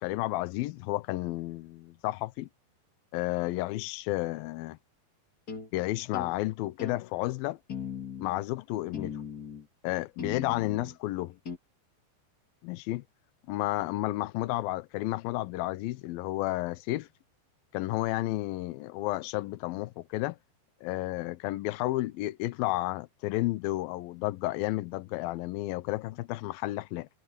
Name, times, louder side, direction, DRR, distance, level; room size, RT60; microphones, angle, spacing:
voice 1, 0.0-2.5 3.1-4.8 5.7-7.6 8.2-9.2 9.8-11.4 12.6-13.0 13.5-17.1 17.7-20.4 20.8-27.1, left 18 dB, 90° left, 2.0 m, -32 dB
sound 1, 5.5-5.7 6.1-6.3 6.8-7.0 7.7-8.3 8.9-9.6 10.2-10.9 11.4-11.6, left 6 dB, 30° left, 1.9 m, -38 dB
omnidirectional pair, 5.2 m